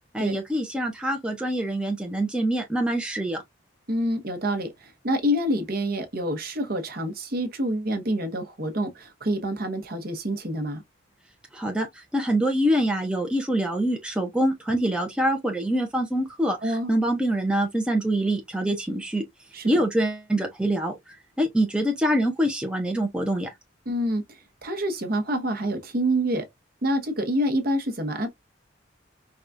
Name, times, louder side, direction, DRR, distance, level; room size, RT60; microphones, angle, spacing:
voice 1, 0.1-3.4 11.5-19.2 19.6-23.5, right 1 dB, 5° right, 0.6 m, -25 dB
voice 2, 3.9-10.8 16.6-16.9 19.5-19.8 23.9-26.5 26.8-28.3, equal, 50° right, 0.9 m, -27 dB
4.6 x 2.3 x 2.5 m
head